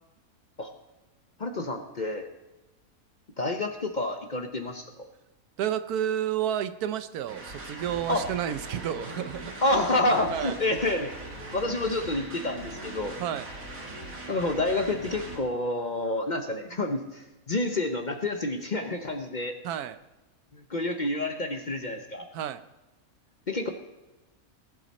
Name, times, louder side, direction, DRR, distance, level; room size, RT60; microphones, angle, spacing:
voice 1, 1.4-2.3 3.4-5.1 8.1-8.3 9.6-11.1 11.5-13.1 14.3-19.5 20.5-22.3 23.5-23.7, left 2 dB, 40° left, 6 dB, 0.8 m, -28 dB
voice 2, 5.6-9.5 10.3-10.5 13.2-13.5 19.6-20.0 22.3-22.6, right 10 dB, 85° right, 12 dB, 1.2 m, -30 dB
sound 1, 7.3-15.4, right 2 dB, 65° right, 2.4 m, -40 dB
18.5 x 7.7 x 4.1 m, 1.1 s
omnidirectional pair, 1.6 m